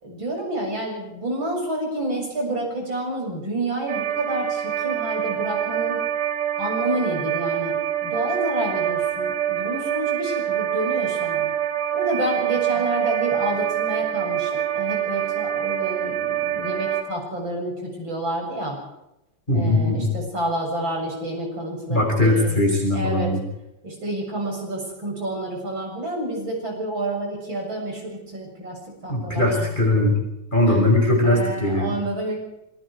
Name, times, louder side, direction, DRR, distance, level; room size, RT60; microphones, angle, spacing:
voice 1, 0.0-6.0 6.6-7.8 8.0-11.5 11.9-18.8 19.5-23.3 23.8-29.5 30.7-30.8 31.2-32.4, right 1 dB, 35° right, 0 dB, 7.9 m, -29 dB
sound 1, 3.9-17.0, right 10 dB, 90° right, 3.9 m, -25 dB
voice 2, 19.5-20.1 21.9-23.4 29.1-30.2 30.5-32.0, left 1 dB, 15° left, 0 dB, 5.9 m, -20 dB
26.5 x 23.5 x 4.9 m, 0.89 s
omnidirectional pair, 3.5 m